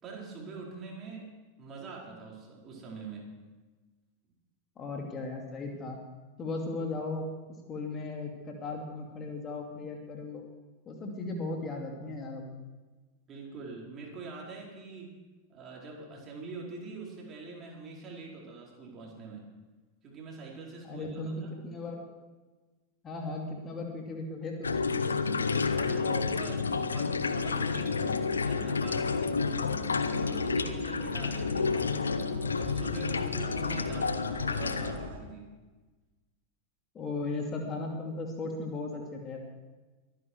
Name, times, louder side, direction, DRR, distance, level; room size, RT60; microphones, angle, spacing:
voice 1, 0.0-3.3 13.3-15.1 15.5-19.4 20.0-21.6 25.7-29.6 30.2-32.1 32.5-35.5, right 3 dB, 30° right, -2 dB, 4.6 m, -44 dB
voice 2, 4.8-6.0 6.4-7.2 7.7-10.4 10.9-12.5 20.9-22.0 23.0-25.4 36.9-39.4, left 3 dB, 25° left, 2 dB, 2.5 m, -37 dB
sound 1, 24.6-35.1, left 5 dB, 75° left, 0.9 m, -30 dB
sound 2, 26.4-35.2, right 2 dB, 55° right, 2.5 m, -45 dB
23.5 x 10.0 x 4.7 m, 1.2 s
figure-of-eight pair, 90°, 0 cm